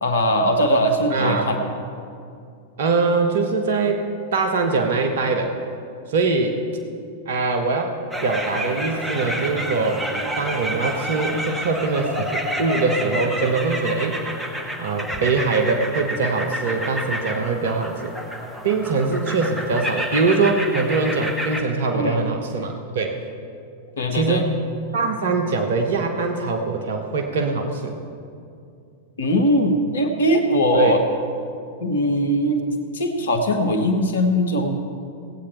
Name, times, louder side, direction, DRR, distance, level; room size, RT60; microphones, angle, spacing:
voice 1, 0.0-1.7 21.9-22.2 24.0-24.4 29.2-31.0 31.8-32.6 32.9-34.8, equal, 65° left, 6 dB, 1.1 m, -20 dB
voice 2, 1.1-1.5 2.8-4.0 4.3-5.5 6.1-6.6 7.3-7.9 8.2-10.0 10.4-14.2 14.8-18.1 18.6-23.2 24.1-24.5 24.9-27.9 30.7-31.0, right 4 dB, 60° right, 4 dB, 1.0 m, -22 dB
sound 1, 8.1-21.6, equal, 5° right, 1.3 m, -29 dB
17.0 x 8.6 x 4.4 m, 2.5 s
figure-of-eight pair, 95°, 0 cm